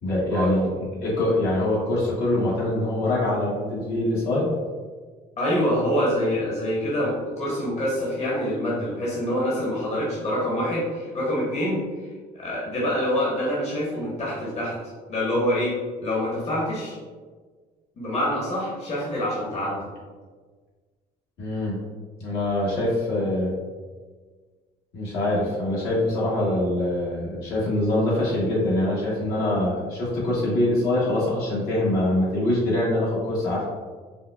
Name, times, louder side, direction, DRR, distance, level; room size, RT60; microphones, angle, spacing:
voice 1, 0.0-4.5 21.4-21.8 22.2-23.5 24.9-33.6, left 1 dB, 70° left, -6 dB, 1.4 m, -24 dB
voice 2, 5.4-11.8 12.3-14.7 15.1-15.7 16.0-17.0 18.0-19.8, equal, 40° left, -6 dB, 1.1 m, -25 dB
5.1 x 2.2 x 2.3 m, 1.5 s
cardioid pair, 110°, 17 cm